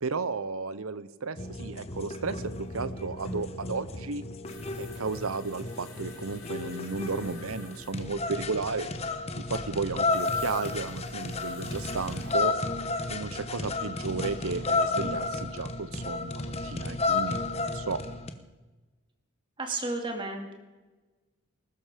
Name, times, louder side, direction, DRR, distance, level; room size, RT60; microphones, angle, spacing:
voice 1, 0.0-4.2 4.7-8.9 9.4-12.5 13.1-18.0, right 4 dB, 75° right, 15 dB, 0.9 m, -34 dB
sound 1, 1.4-18.3, left 3 dB, 30° left, 1.0 m, -32 dB
sound 2, 2.1-2.2 2.4-8.0 10.1-12.4 14.6-14.7 16.2-16.9 17.1-17.2, left 3 dB, 65° left, 5.9 m, -49 dB
voice 2, 19.6-20.5, right 2 dB, 20° right, 4 dB, 2.2 m, -32 dB
20.0 x 12.5 x 5.1 m, 1.2 s
head